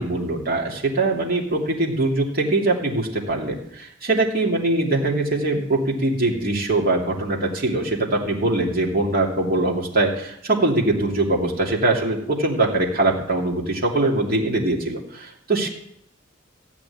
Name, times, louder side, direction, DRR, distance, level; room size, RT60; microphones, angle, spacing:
voice 1, 0.0-15.7, right 2 dB, 50° right, -2 dB, 2.7 m, -22 dB
14.5 x 5.9 x 10.0 m, 0.74 s
head